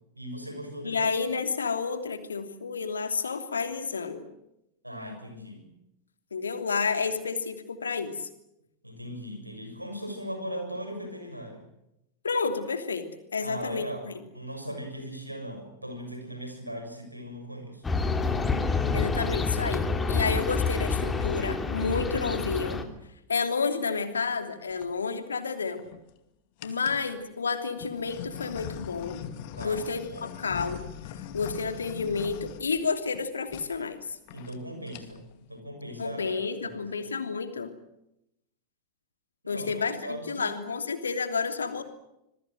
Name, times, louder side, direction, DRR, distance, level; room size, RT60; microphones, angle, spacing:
voice 1, 0.1-1.0 4.8-5.7 8.8-11.6 13.4-17.8 26.7-26.8 29.6-30.3 34.3-36.8 39.4-40.6, equal, 90° right, 6 dB, 6.8 m, -39 dB
voice 2, 0.8-4.3 6.3-8.3 12.2-13.1 13.3-14.1 18.9-22.8 23.3-25.8 26.6-29.3 29.6-30.8 31.3-34.2 36.0-37.7 39.5-41.8, left 5 dB, 75° left, 8 dB, 3.0 m, -30 dB
sound 1, 17.8-22.8, left 4 dB, 15° left, 2.9 m, -28 dB
sound 2, 24.5-24.9 25.6-26.1 26.6-27.1 27.8-33.2 33.5-33.7 34.0-34.1 34.3-34.6 34.8-35.3, left 10 dB, 45° left, 2.2 m, -41 dB
27.0 x 22.0 x 7.8 m, 0.84 s
figure-of-eight pair, 90°, 0 cm